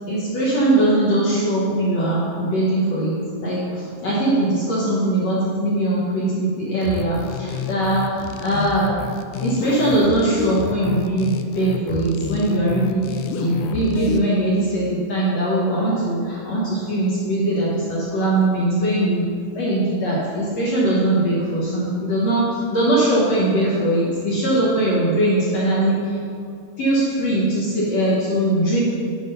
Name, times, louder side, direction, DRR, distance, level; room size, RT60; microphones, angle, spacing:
voice 1, 0.1-9.0 9.4-19.3 19.5-26.2 26.8-28.8, right 1 dB, 70° left, -6 dB, 1.5 m, -21 dB
sound 1, 6.8-14.2, left 7 dB, 85° left, 2.1 m, -30 dB
9.4 x 5.9 x 5.5 m, 2.2 s
omnidirectional pair, 5.0 m